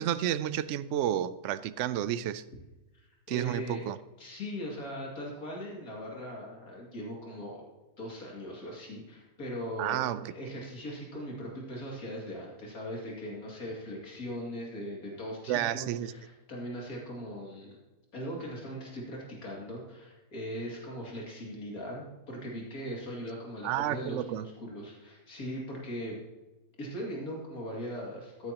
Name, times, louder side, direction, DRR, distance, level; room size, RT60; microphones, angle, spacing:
voice 1, 0.0-2.4 3.3-4.0 9.8-10.3 15.5-16.1 23.6-24.5, right 11 dB, 65° right, 0.8 m, -31 dB
voice 2, 2.9-3.9 4.2-7.6 8.0-17.8 18.1-26.2 26.8-28.5, equal, 90° left, 2.8 m, -40 dB
15.0 x 9.5 x 2.9 m
omnidirectional pair, 1.5 m